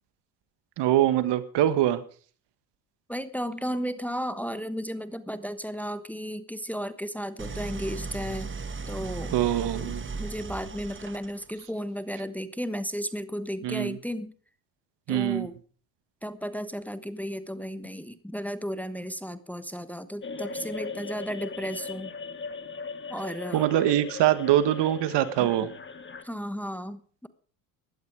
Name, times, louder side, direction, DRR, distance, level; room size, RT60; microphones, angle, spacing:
voice 1, 0.8-2.0 9.3-10.1 13.6-14.0 15.1-15.5 23.5-25.7, right 13 dB, 60° right, 13 dB, 1.8 m, -23 dB
voice 2, 3.1-8.5 8.9-9.4 9.8-14.3 15.1-15.5 16.2-22.1 23.1-23.7 25.4-25.7 26.2-27.3, equal, 5° left, 12 dB, 1.1 m, -34 dB
Idling, 7.4-11.6, right 4 dB, 25° right, 1.6 m, -36 dB
sound 1, 20.2-26.2, left 4 dB, 25° left, 1.8 m, -38 dB
16.5 x 11.5 x 4.9 m, 0.42 s
supercardioid pair, 90°, 46 cm